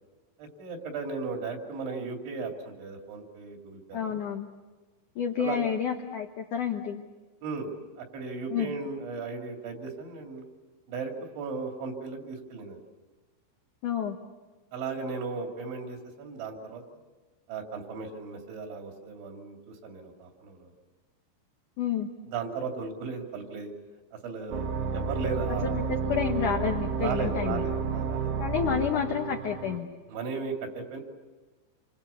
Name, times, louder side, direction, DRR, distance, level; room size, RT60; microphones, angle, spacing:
voice 1, 0.4-4.2 5.4-5.6 7.4-7.7 8.0-10.4 10.9-12.8 14.7-16.8 17.5-20.7 22.3-23.7 24.1-26.0 27.0-28.3 30.1-31.0, right 4 dB, 70° right, 3 dB, 5.0 m, -36 dB
voice 2, 3.9-4.5 5.2-7.0 8.5-8.7 13.8-14.2 21.8-22.1 25.6-27.6 28.4-29.9, left 8 dB, 75° left, 3 dB, 1.9 m, -29 dB
sound 1, 24.5-29.8, right 5 dB, 90° right, 4.4 m, -31 dB
28.0 x 25.5 x 7.0 m, 1.3 s
omnidirectional pair, 5.5 m